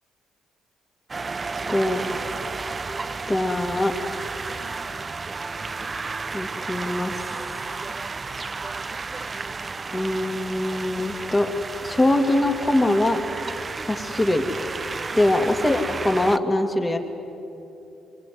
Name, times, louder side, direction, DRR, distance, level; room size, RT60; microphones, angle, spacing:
sound 1, 1.1-16.4, right 4 dB, 30° right, 0.8 m, -32 dB
voice 1, 1.7-2.0 3.3-3.9 6.3-7.2 9.9-11.5 11.8-13.2 13.8-14.4 15.1-17.0, left 1 dB, 20° left, 4 dB, 2.7 m, -22 dB
24.5 x 24.0 x 9.7 m, 2.9 s
cardioid pair, 90°, 0 cm